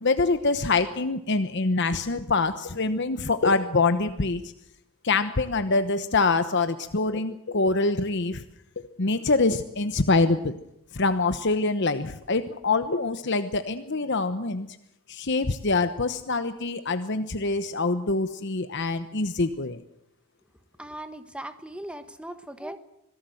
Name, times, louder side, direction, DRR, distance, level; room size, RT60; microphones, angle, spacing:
voice 1, 0.0-4.4 5.0-8.4 8.8-10.6 10.9-14.8 15.1-19.8, left 3 dB, 55° left, 10 dB, 1.0 m, -25 dB
voice 2, 20.8-22.8, right 1 dB, 5° right, 10 dB, 1.4 m, -38 dB
25.5 x 17.5 x 7.9 m, 0.79 s
head